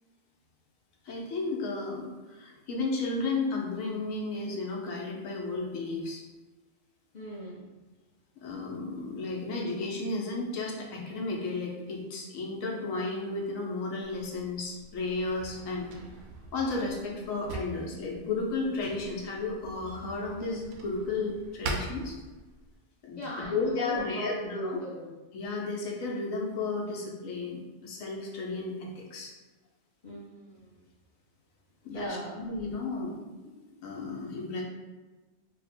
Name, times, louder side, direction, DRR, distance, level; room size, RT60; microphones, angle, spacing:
voice 1, 1.0-6.2 8.4-15.9 16.5-22.2 23.0-24.8 25.3-29.3 31.8-33.2 33.4-33.5 33.8-34.6, left 3 dB, 80° left, -1 dB, 1.1 m, -33 dB
voice 2, 7.1-7.7 23.2-25.1 30.0-30.8 31.8-32.5, equal, 40° left, -6 dB, 0.7 m, -38 dB
Drawer open or close, 14.0-22.8, right 3 dB, 85° right, 1.0 m, -43 dB
2.9 x 2.1 x 4.1 m, 1.2 s
omnidirectional pair, 1.4 m